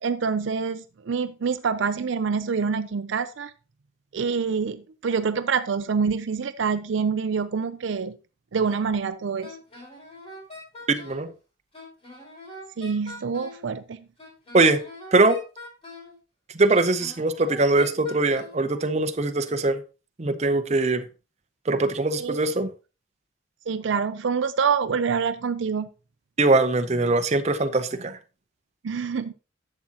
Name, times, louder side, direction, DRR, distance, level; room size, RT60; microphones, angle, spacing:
voice 1, 0.0-3.5 4.1-8.2 8.5-9.6 12.8-14.0 22.2-22.4 23.7-25.9 28.8-29.3, right 5 dB, 70° right, 0.5 m, -26 dB
Wind instrument woodwind instrument, 9.4-11.3 11.7-13.7 14.2-16.2 16.7-18.6, left 1 dB, 30° left, 4.4 m, -43 dB
voice 2, 10.9-11.3 14.5-14.8 15.1-15.4 16.5-19.8 20.2-21.0 21.7-22.7 26.4-28.2, right 2 dB, 35° right, 0.7 m, -22 dB
11.0 x 7.5 x 2.9 m
head